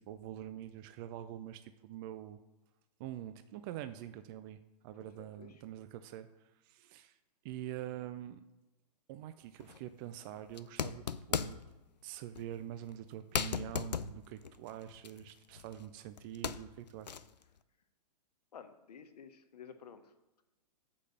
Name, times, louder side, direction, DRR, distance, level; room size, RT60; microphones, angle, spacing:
voice 1, 0.0-2.4 3.0-7.2 7.4-8.4 9.1-11.6 12.0-17.2, right 12 dB, 30° right, 11 dB, 0.4 m, -45 dB
voice 2, 5.2-5.5 18.5-20.1, left 7 dB, 70° left, 9 dB, 1.0 m, -52 dB
sound 1, 9.6-9.8 10.5-11.7 12.3-12.5 12.9-13.0 13.3-15.9 16.2-17.4, left 7 dB, 90° left, 0.5 m, -38 dB
6.5 x 5.1 x 6.9 m, 1.0 s
hypercardioid pair, 120°, 21 cm